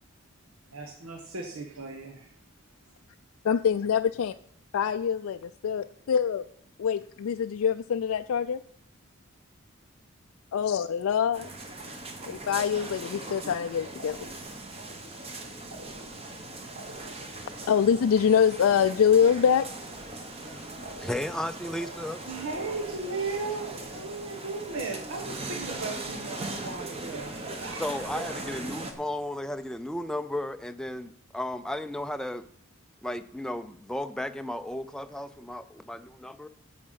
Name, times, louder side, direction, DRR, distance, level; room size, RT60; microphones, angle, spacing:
voice 1, 0.7-2.3 22.3-28.1, right 3 dB, 80° right, 3 dB, 1.2 m, -36 dB
voice 2, 3.4-4.3 4.7-5.4 5.6-6.4 6.8-8.6 10.5-11.5 12.3-14.2 17.7-19.7, left 7 dB, 80° left, 9 dB, 0.3 m, -24 dB
sound 1, 11.3-28.9, right 2 dB, 25° right, 1.2 m, -39 dB
sound 2, 14.0-14.7 15.7-16.4 16.8-17.5 20.8-21.6 22.5-23.3 23.6-24.3, right 1 dB, 45° right, 1.5 m, -47 dB
voice 3, 20.2-22.3 27.8-32.5 33.0-36.5, left 1 dB, 5° left, 9 dB, 0.4 m, -34 dB
9.9 x 7.9 x 5.6 m, 0.68 s
head